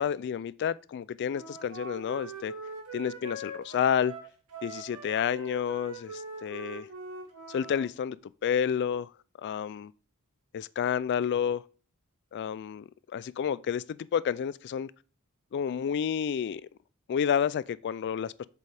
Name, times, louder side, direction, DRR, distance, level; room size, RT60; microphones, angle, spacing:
voice 1, 0.0-2.5 2.9-4.1 4.6-6.9 7.5-9.1 9.4-9.9 10.5-11.6 12.3-12.8 13.1-14.9 15.5-16.7 17.1-18.5, left 8 dB, 50° left, 0.3 m, -30 dB
Wind instrument woodwind instrument, 1.3-7.9, right 3 dB, 90° right, 1.8 m, -42 dB
8.1 x 6.8 x 3.4 m
head